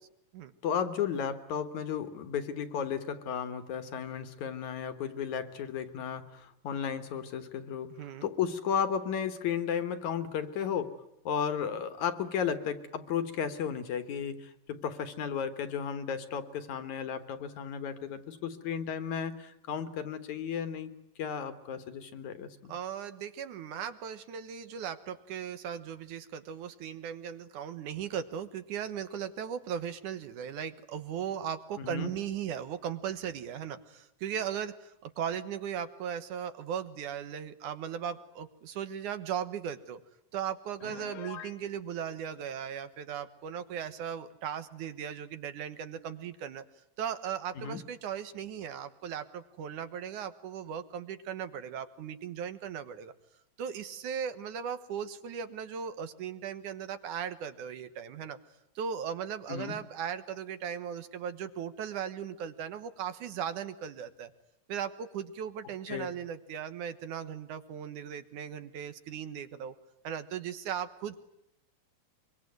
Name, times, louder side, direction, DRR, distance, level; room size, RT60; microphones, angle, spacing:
voice 1, 0.6-7.9 8.2-10.9 11.2-20.9 21.2-22.7 31.8-32.1 47.6-47.8 59.5-59.8 65.9-66.1, left 7 dB, 60° left, 11 dB, 2.7 m, -34 dB
voice 2, 8.0-8.3 22.7-40.0 40.3-46.6 47.0-53.1 53.6-58.4 58.8-64.3 64.7-69.8 70.0-71.2, right 8 dB, 65° right, 11 dB, 2.5 m, -37 dB
Piano, 40.8-41.6, left 11 dB, 80° left, 3.0 m, -43 dB
24.5 x 24.5 x 9.4 m, 0.81 s
omnidirectional pair, 4.0 m